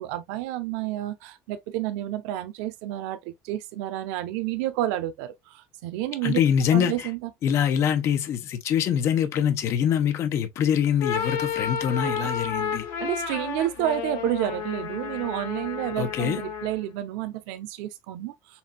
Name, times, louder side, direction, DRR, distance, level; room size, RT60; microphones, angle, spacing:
voice 1, 0.0-6.4 6.7-7.3 12.0-12.3 13.0-18.6, right 13 dB, 90° right, 0.9 m, -30 dB
voice 2, 6.2-7.1 7.4-12.8 16.0-16.4, left 9 dB, 40° left, 0.9 m, -24 dB
sound 1, 10.9-16.9, left 7 dB, 75° left, 2.0 m, -31 dB
7.1 x 2.7 x 2.3 m
cardioid pair, 170°, 7 cm